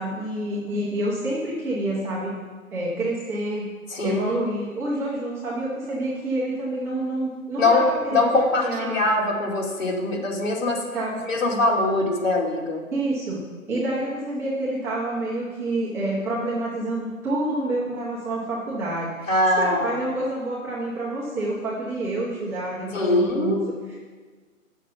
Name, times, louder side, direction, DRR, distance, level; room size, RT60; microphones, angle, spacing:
voice 1, 0.0-2.3 2.7-3.7 4.0-8.3 8.6-9.0 10.9-11.2 12.9-24.0, right 1 dB, 5° right, -8 dB, 0.9 m, -28 dB
voice 2, 3.9-4.5 7.6-7.8 8.1-10.8 11.3-12.8 19.3-20.0 22.9-23.6, left 2 dB, 65° left, -2 dB, 2.6 m, -22 dB
8.5 x 6.5 x 5.7 m, 1.5 s
figure-of-eight pair, 140°, 42 cm